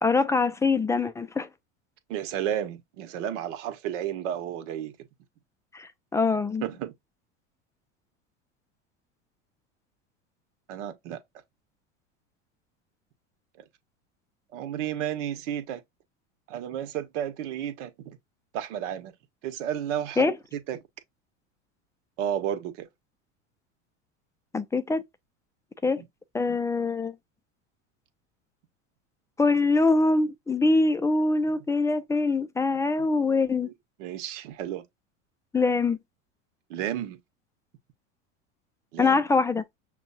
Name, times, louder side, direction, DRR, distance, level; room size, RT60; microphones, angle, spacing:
voice 1, 0.0-1.5 5.7-6.6 20.2-20.4 24.5-25.0 25.8-26.0 26.3-27.1 29.4-33.7 35.5-36.0 39.0-39.6, left 3 dB, 10° left, 0.4 m, -24 dB
voice 2, 2.1-4.9 6.6-6.9 10.7-11.2 14.5-15.8 16.5-18.2 18.5-19.1 19.4-20.8 22.2-22.9 26.0-26.1 33.6-33.7 34.0-34.8 36.7-37.2 38.9-39.2, right 10 dB, 70° right, 1.2 m, -32 dB
6.1 x 2.4 x 2.7 m
supercardioid pair, 105°, 38 cm